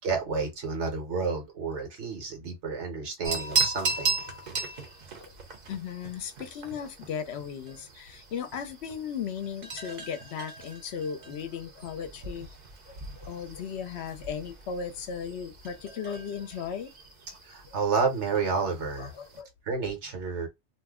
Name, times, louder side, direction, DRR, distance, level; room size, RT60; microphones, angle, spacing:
voice 1, 0.0-4.2 17.5-19.1 19.6-20.5, right 4 dB, 75° right, 1.2 m, -30 dB
sound 1, 3.2-19.4, right 4 dB, 45° right, 0.7 m, -37 dB
voice 2, 5.7-12.5 12.9-16.9 19.0-19.5, left 7 dB, 70° left, 0.8 m, -36 dB
2.6 x 2.1 x 3.5 m
omnidirectional pair, 1.2 m